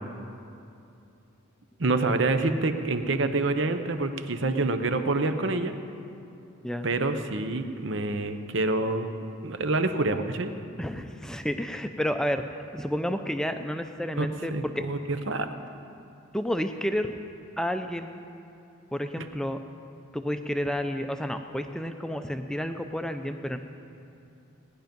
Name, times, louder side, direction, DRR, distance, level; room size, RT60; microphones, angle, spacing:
voice 1, 1.8-5.7 6.8-9.1 9.4-10.5 14.2-14.3 14.5-15.5, right 2 dB, 60° right, 8 dB, 0.8 m, -27 dB
voice 2, 10.8-12.4 12.7-14.8 16.3-17.2 17.6-18.2 18.9-19.6 20.1-23.6, equal, 5° left, 7 dB, 0.5 m, -30 dB
18.5 x 10.5 x 5.3 m, 2.7 s
head